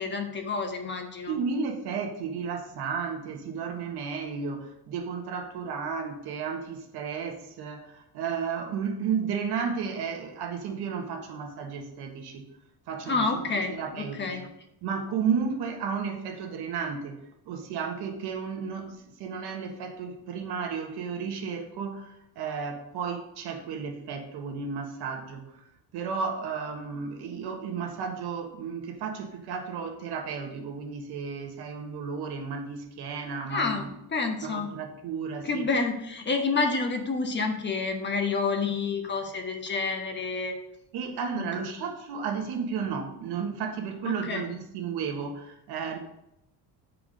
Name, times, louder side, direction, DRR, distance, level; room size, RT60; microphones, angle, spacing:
voice 1, 0.0-1.4 13.1-14.5 33.5-34.7 35.4-40.5 41.4-41.5 44.0-44.4, left 4 dB, 30° left, 3 dB, 1.1 m, -29 dB
voice 2, 1.3-12.4 12.9-14.5 14.8-17.2 17.5-25.5 25.9-33.9 34.4-35.6 40.9-46.0, right 6 dB, 75° right, 4 dB, 1.5 m, -33 dB
10.0 x 4.8 x 5.2 m, 0.82 s
cardioid pair, 145°, 39 cm